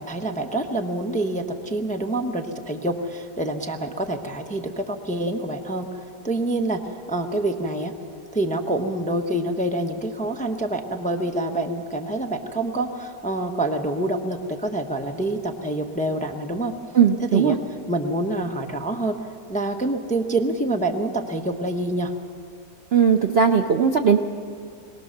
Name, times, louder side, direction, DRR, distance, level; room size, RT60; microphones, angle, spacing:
voice 1, 0.0-5.9 6.2-7.9 8.3-16.7 17.2-17.6 17.9-19.2 19.5-22.1, right 1 dB, 5° left, 4 dB, 0.7 m, -26 dB
voice 2, 16.9-17.6 22.9-24.2, right 7 dB, 55° right, 5 dB, 0.7 m, -18 dB
22.5 x 18.5 x 6.6 m, 2.3 s
omnidirectional pair, 1.8 m